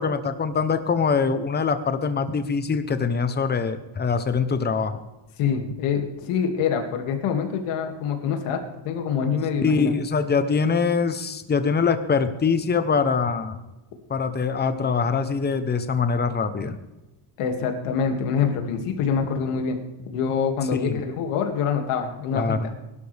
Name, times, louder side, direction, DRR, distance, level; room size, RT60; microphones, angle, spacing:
voice 1, 0.0-5.0 9.6-13.6 14.1-16.8 20.7-21.0 22.3-22.7, left 5 dB, 20° left, 10 dB, 0.9 m, -23 dB
voice 2, 5.4-9.9 17.4-19.8 20.1-22.6, left 6 dB, 90° left, 4 dB, 2.5 m, -25 dB
21.5 x 12.0 x 3.5 m, 1.0 s
cardioid pair, 160°, 50 cm